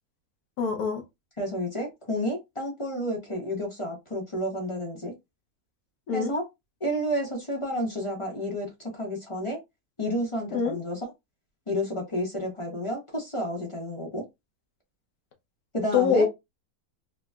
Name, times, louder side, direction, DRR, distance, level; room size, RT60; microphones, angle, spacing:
voice 1, 0.6-1.0 6.1-6.3 10.5-10.8 15.9-16.3, left 6 dB, 80° left, 1.4 m, -24 dB
voice 2, 1.4-5.1 6.1-6.4 6.8-9.6 10.0-11.0 11.7-14.2 15.7-16.3, equal, 25° left, 0.8 m, -30 dB
4.7 x 2.2 x 2.4 m
omnidirectional pair, 1.6 m